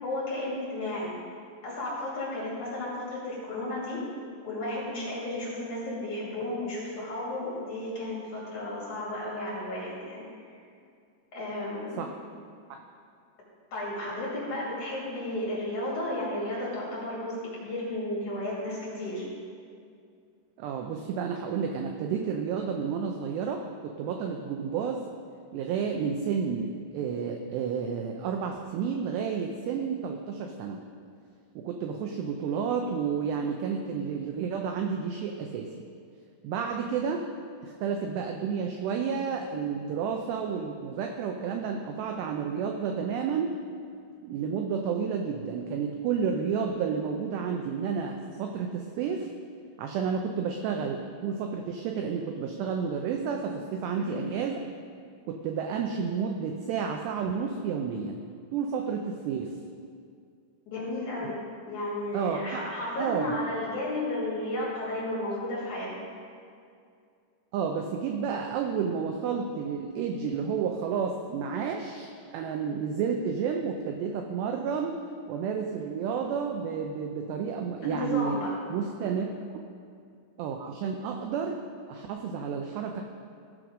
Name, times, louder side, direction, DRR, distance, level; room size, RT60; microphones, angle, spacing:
voice 1, 0.0-1.1 1.6-4.0 4.4-10.5 11.3-12.0 13.7-19.2 53.9-54.2 60.7-61.4 61.7-65.9 77.8-78.5 79.0-79.1, left 1 dB, 45° left, -6 dB, 3.2 m, -33 dB
voice 2, 20.6-25.1 25.5-30.8 31.6-35.8 36.4-37.2 37.6-43.5 44.2-49.3 49.8-54.5 55.3-58.2 58.5-59.6 62.1-62.7 63.0-63.4 67.5-75.0 75.3-78.4 78.7-79.3 80.4-83.0, right 6 dB, 85° right, 3 dB, 2.4 m, -31 dB
15.5 x 6.2 x 5.0 m, 2.3 s
omnidirectional pair, 5.6 m